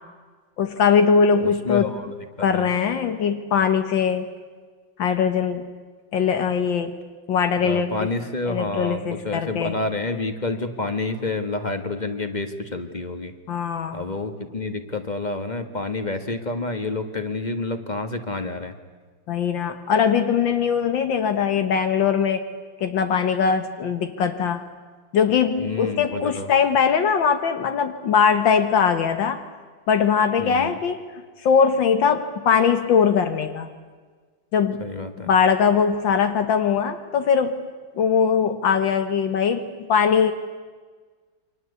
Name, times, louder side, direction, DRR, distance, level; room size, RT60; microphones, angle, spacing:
voice 1, 0.6-1.9 2.4-4.3 5.0-5.6 6.1-7.0 7.3-7.9 8.5-9.8 13.5-14.0 19.3-22.4 22.8-24.6 25.1-29.4 29.9-33.7 34.5-34.8 35.2-37.6 38.0-40.3, left 6 dB, 80° left, 8 dB, 2.0 m, -21 dB
voice 2, 1.4-2.1 2.4-2.7 7.6-13.3 13.9-18.8 25.6-26.5 30.4-30.8 34.8-35.3, left 3 dB, 25° left, 8 dB, 1.7 m, -29 dB
29.0 x 24.0 x 8.3 m, 1.5 s
omnidirectional pair, 2.0 m